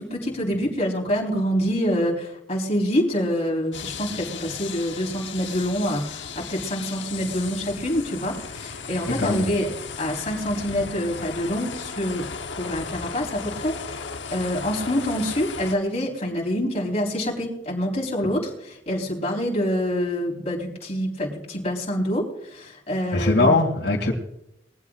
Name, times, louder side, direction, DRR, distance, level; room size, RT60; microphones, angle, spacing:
voice 1, 0.0-9.7 10.0-12.3 12.6-23.5, equal, 35° left, -2 dB, 4.3 m, -26 dB
sound 1, 3.7-15.8, left 5 dB, 85° left, 1.1 m, -36 dB
voice 2, 23.1-24.1, left 2 dB, 65° left, -5 dB, 2.9 m, -20 dB
22.0 x 15.5 x 2.5 m, 0.82 s
head